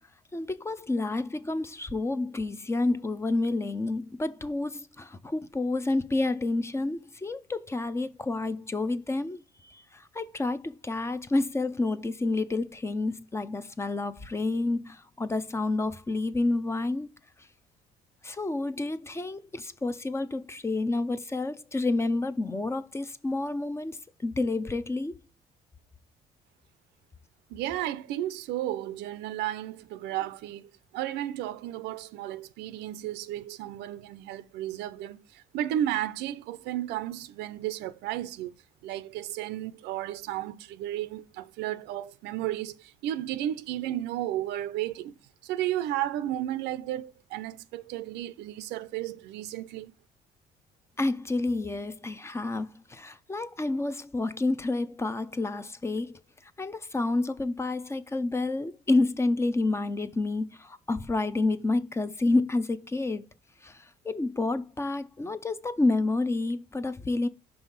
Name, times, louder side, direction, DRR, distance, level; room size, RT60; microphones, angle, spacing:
voice 1, 0.3-17.1 18.2-25.2 51.0-56.2 56.6-63.3 63.6-67.3, left 2 dB, 15° left, 0.5 m, -29 dB
voice 2, 27.5-38.5 38.8-45.2 45.4-49.9, right 12 dB, 85° right, 0.5 m, -33 dB
5.5 x 3.4 x 5.6 m
cardioid pair, 110°, 17 cm